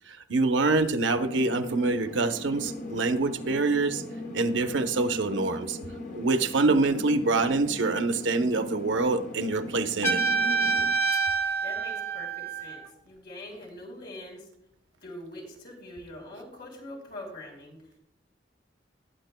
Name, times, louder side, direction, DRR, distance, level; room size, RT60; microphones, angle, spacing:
voice 1, 0.1-4.0 4.3-5.8 6.1-10.2, right 3 dB, 85° right, 7 dB, 0.8 m, -25 dB
sound 1, 1.2-10.9, equal, 45° left, 1.1 m, -39 dB
Trumpet, 10.0-12.9, right 5 dB, 15° left, 0.8 m, -27 dB
voice 2, 11.6-14.4 15.0-17.8, left 1 dB, 60° left, -1 dB, 4.3 m, -43 dB
20.0 x 9.2 x 2.2 m, 0.75 s
head